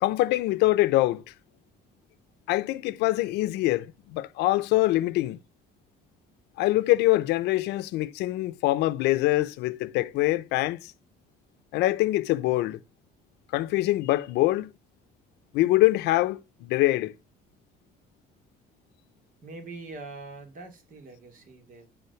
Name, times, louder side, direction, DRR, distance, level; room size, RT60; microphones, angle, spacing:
voice 1, 0.0-1.2 2.5-5.4 6.6-10.9 11.7-12.8 13.5-14.7 15.5-17.2, left 17 dB, 90° left, 0.7 m, -24 dB
voice 2, 19.4-21.9, right 3 dB, 55° right, 2.7 m, -43 dB
11.0 x 3.7 x 6.9 m
cardioid pair, 110°, 17 cm